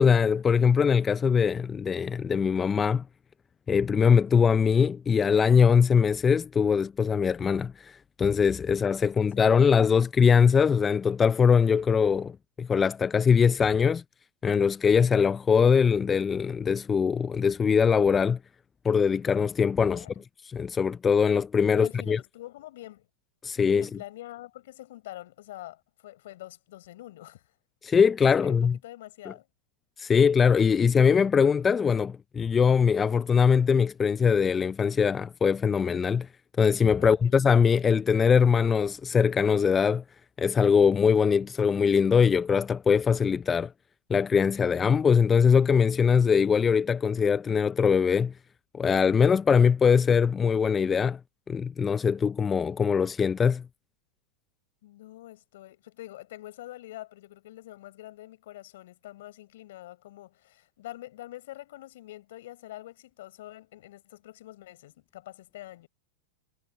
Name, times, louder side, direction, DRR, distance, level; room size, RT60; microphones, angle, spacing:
voice 1, 0.0-3.0 3.7-14.0 14.4-18.4 18.8-20.1 20.4-22.2 23.4-23.9 27.8-28.7 30.0-36.3 36.6-40.0 40.4-43.7 44.1-48.3 48.7-51.2 51.5-53.6, left 6 dB, 20° left, 0.4 m, -22 dB
voice 2, 9.2-9.8 19.9-20.2 21.7-23.1 23.6-27.5 28.2-29.5 37.0-37.4 54.8-65.9, left 15 dB, 65° left, 4.8 m, -45 dB
hypercardioid pair, 115°, 0 cm